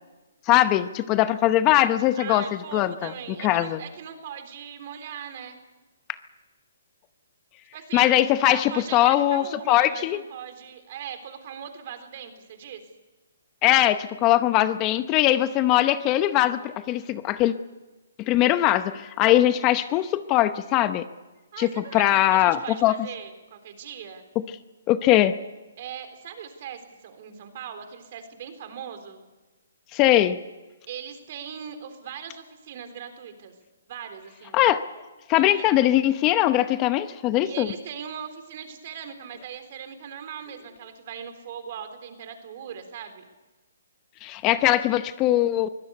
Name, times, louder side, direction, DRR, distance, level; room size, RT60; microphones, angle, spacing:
voice 1, 0.5-2.5 2.7-3.1 3.4-3.8 7.9-10.2 13.6-17.5 18.2-21.0 21.6-22.9 24.9-25.4 29.9-30.4 34.5-34.8 35.3-37.7 44.2-45.7, left 14 dB, 25° left, 12 dB, 0.8 m, -21 dB
voice 2, 2.2-5.6 7.7-8.1 8.4-12.8 21.5-24.2 25.8-29.2 30.9-33.5 33.9-34.6 35.4-35.7 37.4-43.3, right 8 dB, 45° right, 8 dB, 3.7 m, -39 dB
23.5 x 17.0 x 8.1 m, 1.2 s
hypercardioid pair, 150°, 0 cm